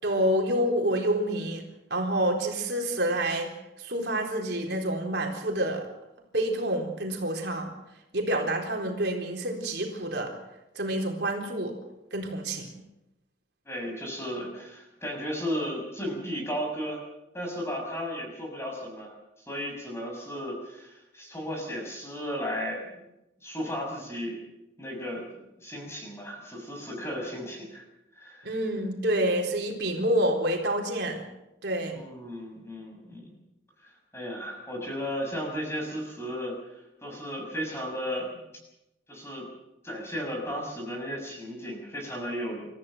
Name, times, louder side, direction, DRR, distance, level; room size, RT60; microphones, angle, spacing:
voice 1, 0.0-1.6 1.9-3.5 3.8-5.9 6.3-7.7 8.1-10.3 10.8-11.7 12.1-12.8 28.4-31.3 31.6-32.0, right 1 dB, 60° right, 1 dB, 4.0 m, -28 dB
voice 2, 13.6-17.0 17.3-19.1 19.5-22.9 23.4-24.4 24.8-27.8 28.2-28.5 31.9-33.3 34.1-36.6 37.0-38.5 39.1-39.5 39.8-42.7, equal, 15° left, 1 dB, 6.7 m, -34 dB
28.5 x 15.0 x 7.8 m, 0.92 s
head